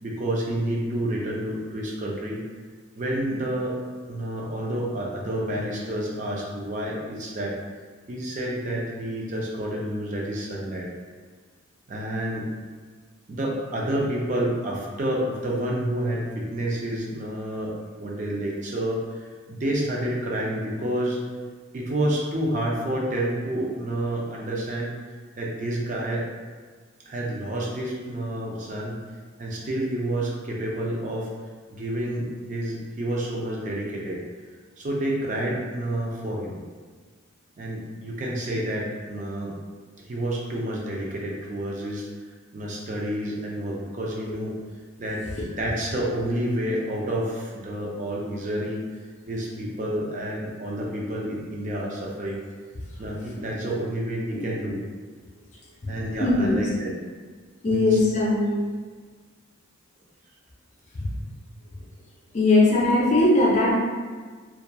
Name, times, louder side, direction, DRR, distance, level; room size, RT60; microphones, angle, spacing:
voice 1, 0.0-2.4 3.0-3.8 4.1-7.5 8.1-10.9 11.9-12.4 13.3-19.0 19.5-21.2 21.7-25.0 25.4-26.3 27.1-29.0 29.4-31.3 31.7-34.2 34.8-36.6 37.6-39.5 40.0-42.1 42.5-44.6 45.0-45.2 45.6-48.8 49.3-52.4 53.0-54.8 55.9-56.9 57.7-58.0, right 1 dB, 35° right, -3 dB, 0.4 m, -29 dB
voice 2, 56.2-56.7 57.6-58.5 62.3-63.7, left 2 dB, 35° left, -4 dB, 0.5 m, -20 dB
2.8 x 2.3 x 2.2 m, 1.5 s
head